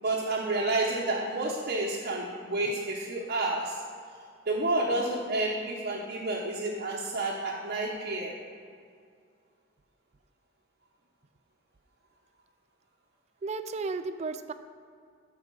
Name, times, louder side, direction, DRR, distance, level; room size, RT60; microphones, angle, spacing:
voice 1, 0.0-3.8 4.5-8.4, right 2 dB, 50° right, -4 dB, 0.9 m, -30 dB
voice 2, 13.4-14.5, right 3 dB, 35° right, 10 dB, 0.4 m, -34 dB
8.3 x 4.7 x 6.2 m, 2.2 s
head